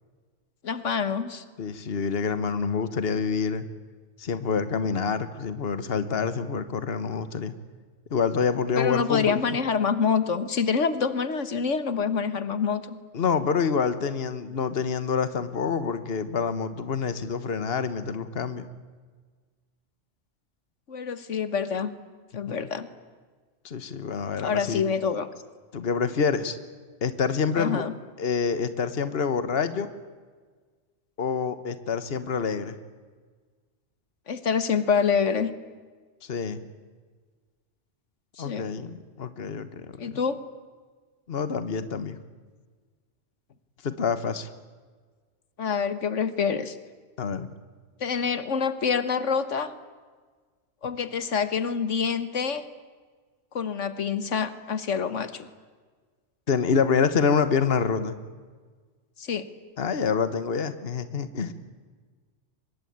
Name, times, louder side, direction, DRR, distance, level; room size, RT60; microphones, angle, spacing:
voice 1, 0.6-1.4 8.8-13.0 20.9-21.9 22.3-22.9 24.4-25.3 27.6-27.9 34.3-35.5 38.4-38.6 40.0-40.4 45.6-46.8 48.0-49.8 50.8-52.7 53.5-55.5 59.2-59.5, left 6 dB, 80° left, 13 dB, 1.6 m, -26 dB
voice 2, 1.6-3.6 4.2-7.5 8.1-9.4 13.1-18.7 22.5-22.6 23.6-24.8 25.7-26.6 27.0-27.8 28.2-29.9 31.2-32.8 36.2-36.6 38.4-40.2 41.3-42.2 43.8-44.5 47.2-47.5 56.5-58.2 59.8-61.5, left 5 dB, 55° left, 12 dB, 1.5 m, -27 dB
24.5 x 21.5 x 9.5 m, 1.5 s
omnidirectional pair, 1.2 m